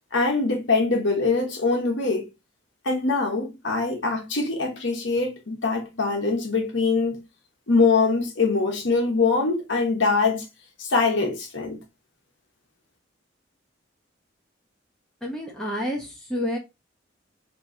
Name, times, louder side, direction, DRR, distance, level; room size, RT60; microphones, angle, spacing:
voice 1, 0.1-2.3 2.8-7.2 7.7-10.4 10.8-11.8, left 3 dB, 80° left, 1.2 m, -23 dB
voice 2, 15.2-16.6, equal, 5° left, 0.9 m, -29 dB
3.0 x 3.0 x 3.8 m
head